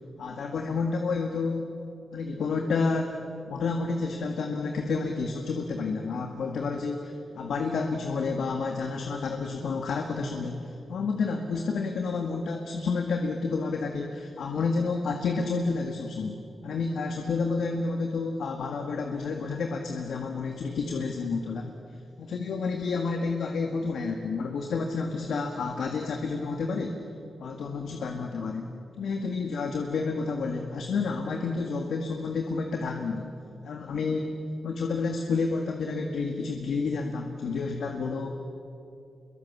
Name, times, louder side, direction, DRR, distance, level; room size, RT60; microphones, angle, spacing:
voice 1, 0.2-1.7 2.1-3.2 3.5-21.7 22.2-27.0 27.4-28.7 29.0-33.3 33.6-34.4 34.6-38.3, left 4 dB, 85° left, 3 dB, 1.8 m, -30 dB
27.0 x 23.0 x 7.3 m, 2.7 s
wide cardioid pair, 110°, 0 cm